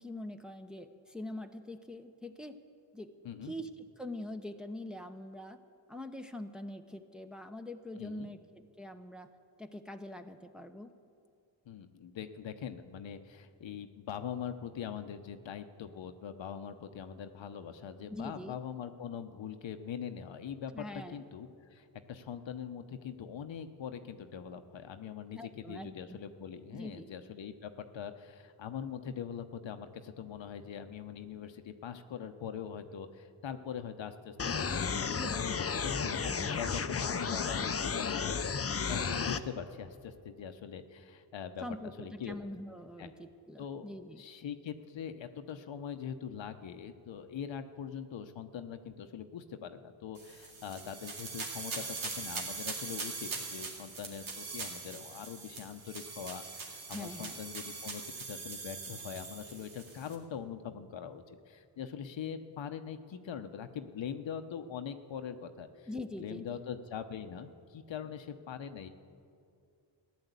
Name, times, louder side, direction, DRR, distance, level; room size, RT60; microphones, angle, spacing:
voice 1, 0.0-2.6 2.9-3.1 3.4-5.6 5.9-9.3 9.6-10.9 18.1-18.6 20.7-21.2 25.3-26.2 26.7-27.1 35.1-35.8 36.0-36.6 41.6-44.2 56.9-57.4 65.9-66.6, left 1 dB, ahead, 5 dB, 0.8 m, -44 dB
voice 2, 8.0-8.3 11.7-41.6 42.0-42.4 43.0-43.1 43.6-43.9 44.2-65.9 66.2-68.9, left 8 dB, 70° left, 8 dB, 1.0 m, -42 dB
sound 1, 34.4-39.4, left 6 dB, 30° left, 0.7 m, -33 dB
sound 2, 50.1-60.1, right 4 dB, 90° right, 2.3 m, -42 dB
15.0 x 10.5 x 8.2 m, 2.4 s
cardioid pair, 70°, 47 cm